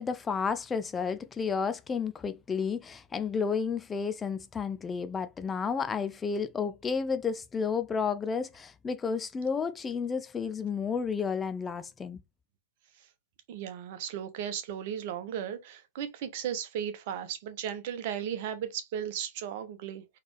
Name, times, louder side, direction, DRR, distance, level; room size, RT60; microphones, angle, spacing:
voice 1, 0.0-12.2, left 5 dB, 15° left, 0.4 m, -31 dB
voice 2, 13.5-20.2, right 9 dB, 50° right, 1.0 m, -36 dB
4.0 x 3.3 x 3.3 m
figure-of-eight pair, 110°, 0 cm